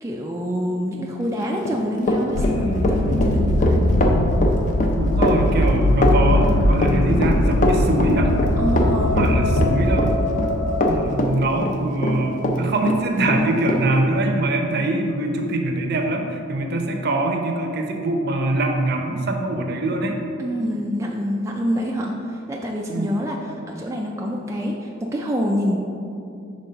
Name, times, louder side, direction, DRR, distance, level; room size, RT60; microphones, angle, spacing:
voice 1, 0.0-3.8 8.6-9.2 20.4-25.8, equal, 15° right, -1 dB, 0.3 m, -26 dB
Run, 1.4-12.6 12.9-13.8, left 1 dB, 40° left, 0.5 m, -22 dB
sound 1, 2.3-11.1, left 1 dB, 85° left, 0.5 m, -20 dB
voice 2, 5.0-8.3 8.8-10.1 10.9-20.2 22.9-23.2, right 2 dB, 50° right, 3 dB, 0.6 m, -23 dB
5.3 x 3.5 x 5.6 m, 2.5 s
head